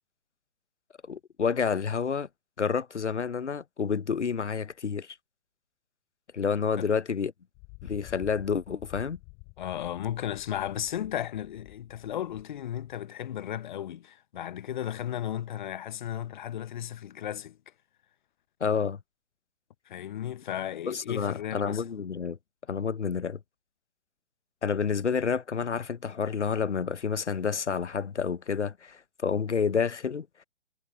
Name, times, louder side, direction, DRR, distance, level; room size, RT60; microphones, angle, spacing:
voice 1, 1.1-2.3 2.6-5.1 6.3-7.3 7.8-9.2 18.6-19.0 20.9-22.4 22.7-23.4 24.6-30.3, left 6 dB, 80° left, 1.0 m, -29 dB
Thunder, 7.5-13.0, left 39 dB, 25° left, 7.9 m, -50 dB
voice 2, 9.6-17.6 19.9-21.8, left 11 dB, 45° left, 1.0 m, -35 dB
figure-of-eight pair, 130°, 34 cm